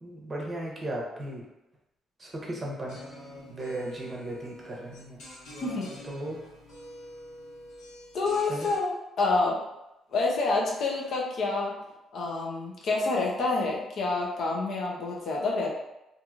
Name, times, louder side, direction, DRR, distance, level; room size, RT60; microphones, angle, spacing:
voice 1, 0.0-1.5 2.2-3.1 3.5-5.2 6.1-6.4 8.5-8.7, right 1 dB, 30° right, -2 dB, 0.8 m, -36 dB
sound 1, 2.8-8.8, left 1 dB, 85° left, 1.2 m, -46 dB
voice 2, 8.1-8.9 9.2-9.6 10.1-11.7 12.1-15.7, left 3 dB, 65° left, -2 dB, 0.7 m, -27 dB
2.9 x 2.5 x 2.4 m, 0.92 s
cardioid pair, 90°, 0 cm